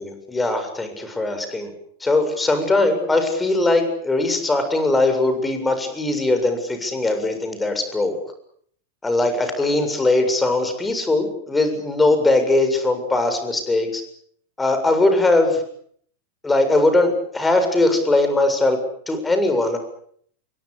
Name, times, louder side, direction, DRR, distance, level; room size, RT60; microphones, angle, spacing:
voice 1, 0.3-1.7 2.0-8.2 9.0-14.0 14.6-15.6 16.4-18.8 19.1-19.8, left 2 dB, 10° left, 7 dB, 7.3 m, -20 dB
29.0 x 22.5 x 6.7 m, 0.63 s
figure-of-eight pair, 90°, 0 cm